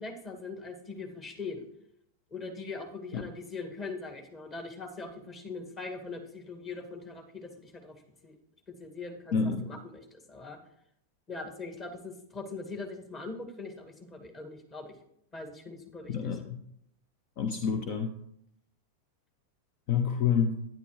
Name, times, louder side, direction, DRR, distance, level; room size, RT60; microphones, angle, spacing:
voice 1, 0.0-1.6 2.3-7.9 8.2-8.3 8.8-9.4 9.6-10.6 11.3-14.9 15.3-16.4, left 3 dB, 25° left, 2 dB, 2.1 m, -41 dB
voice 2, 9.3-9.7 16.1-16.4 17.4-18.1 19.9-20.6, left 6 dB, 45° left, 6 dB, 0.9 m, -28 dB
10.5 x 10.5 x 3.2 m, 0.74 s
figure-of-eight pair, 90°, 0 cm